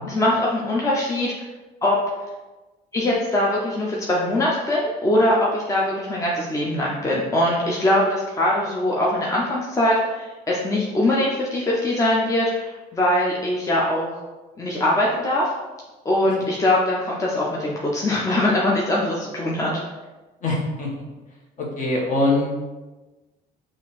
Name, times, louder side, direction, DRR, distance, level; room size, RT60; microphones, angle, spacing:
voice 1, 0.1-1.3 1.8-2.0 2.9-14.2 14.6-15.5 16.0-19.7, left 1 dB, 20° left, -4 dB, 0.6 m, -22 dB
voice 2, 20.4-20.9 21.6-22.5, left 2 dB, 50° left, -3 dB, 1.3 m, -23 dB
3.9 x 2.5 x 4.0 m, 1.2 s
cardioid pair, 110°, 17 cm